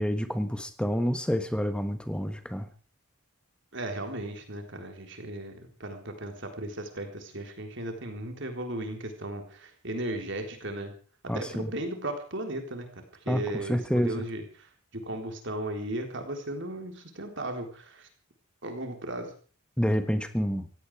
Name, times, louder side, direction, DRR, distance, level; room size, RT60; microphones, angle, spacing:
voice 1, 0.0-2.7 11.3-11.7 13.3-14.2 19.8-20.7, equal, 5° left, 9 dB, 1.4 m, -28 dB
voice 2, 3.7-10.9 11.3-14.4 14.9-18.1 18.6-19.3, right 1 dB, 60° right, 5 dB, 3.8 m, -36 dB
17.0 x 16.5 x 4.9 m, 0.41 s
head